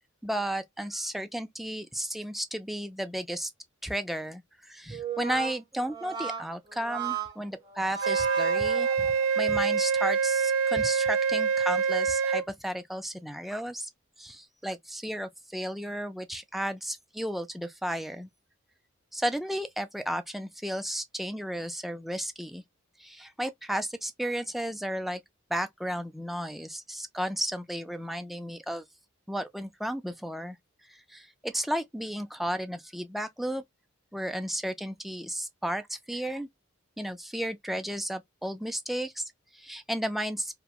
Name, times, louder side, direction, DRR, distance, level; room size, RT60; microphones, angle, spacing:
voice 1, 0.2-3.5 3.8-9.1 9.4-13.9 14.2-18.3 19.1-22.6 23.0-25.2 25.5-28.8 29.3-30.6 30.9-33.6 34.1-36.5 37.0-40.6, equal, ahead, 0.3 m, -33 dB
Brass instrument, 4.9-9.4, right 5 dB, 20° right, 1.0 m, -36 dB
Wind instrument woodwind instrument, 8.0-12.5, right 6 dB, 75° right, 0.4 m, -25 dB
2.9 x 2.2 x 2.3 m
head